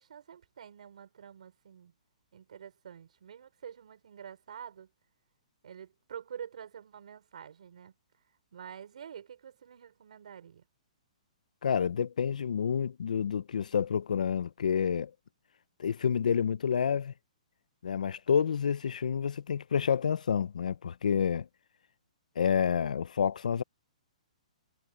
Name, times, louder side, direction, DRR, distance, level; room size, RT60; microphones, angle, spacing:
voice 1, 0.0-1.9 2.3-4.9 5.6-7.9 8.5-10.6, right 8 dB, 65° right, 5.0 m, -47 dB
voice 2, 11.6-15.1 15.8-17.1 17.8-21.5 22.4-23.6, left 7 dB, 85° left, 0.6 m, -29 dB
hypercardioid pair, 170°, 4 cm